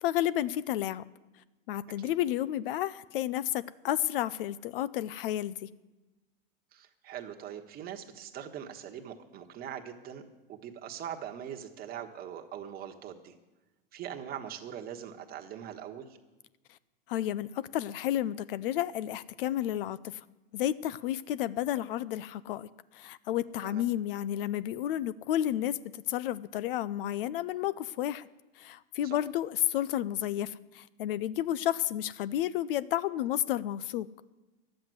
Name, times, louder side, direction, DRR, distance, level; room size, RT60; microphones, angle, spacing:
voice 1, 0.0-1.0 1.7-5.7 17.1-20.2 20.5-28.3 28.6-34.1, left 12 dB, 65° left, 19 dB, 0.5 m, -31 dB
voice 2, 6.7-10.2 10.5-13.3 13.9-16.2 23.6-23.9 29.0-29.2, right 9 dB, 30° right, 3 dB, 1.3 m, -42 dB
11.0 x 7.9 x 9.4 m, 1.1 s
hypercardioid pair, 125°, 29 cm